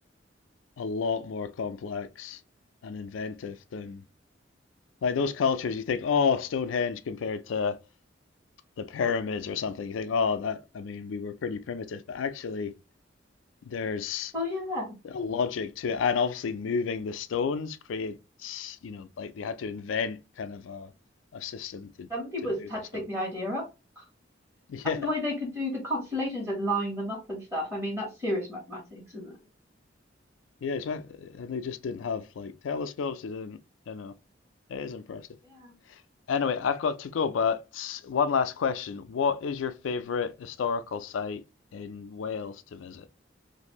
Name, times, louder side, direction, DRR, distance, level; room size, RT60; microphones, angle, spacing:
voice 1, 0.8-2.4 2.8-4.0 5.0-7.8 8.8-12.7 13.6-14.3 15.0-20.9 21.3-22.1 22.4-23.0 24.7-25.0 30.6-33.6 33.9-34.1 34.7-35.3 35.9-36.0 36.3-41.4 41.7-43.1, left 6 dB, 85° left, 0.4 m, -31 dB
voice 2, 14.3-14.9 22.1-23.6 24.0-24.1 24.9-29.3 35.5-35.7, left 1 dB, 15° right, 1.2 m, -32 dB
2.6 x 2.5 x 2.9 m
head